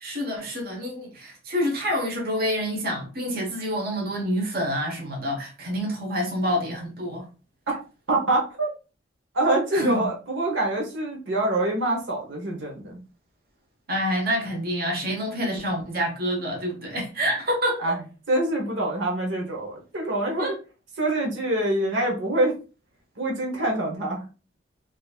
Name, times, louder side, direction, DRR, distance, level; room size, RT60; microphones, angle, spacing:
voice 1, 0.0-7.3 9.7-10.1 13.9-18.0 20.4-20.6, equal, 55° right, 1.1 m, -27 dB
voice 2, 8.1-8.7 9.3-13.0 17.8-18.0 18.3-20.6 21.0-22.6 23.2-24.2, right 1 dB, 90° right, 1.0 m, -25 dB
3.9 x 2.7 x 2.4 m
head